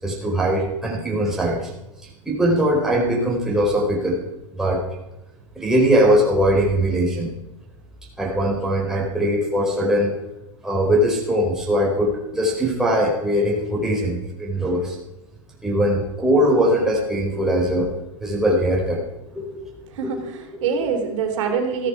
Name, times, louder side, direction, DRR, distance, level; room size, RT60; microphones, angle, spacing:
voice 1, 0.0-1.7 2.2-4.2 4.6-4.8 5.6-7.3 8.2-10.1 10.6-15.0 15.6-19.0 19.3-19.6, equal, 5° right, -3 dB, 4.4 m, -21 dB
voice 2, 19.9-21.9, right 6 dB, 65° right, 3 dB, 3.7 m, -25 dB
15.5 x 13.5 x 4.8 m, 0.93 s
supercardioid pair, 150°, 17 cm